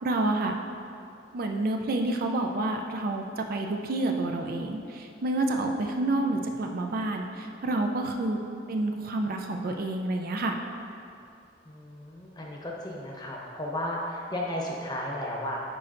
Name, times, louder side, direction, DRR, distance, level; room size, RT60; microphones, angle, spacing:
voice 1, 0.0-0.5 1.3-8.4 8.7-10.6, right 2 dB, 55° right, 3 dB, 0.4 m, -29 dB
voice 2, 11.7-15.6, left 1 dB, 25° left, -2 dB, 0.8 m, -34 dB
10.0 x 4.4 x 2.5 m, 2.5 s
head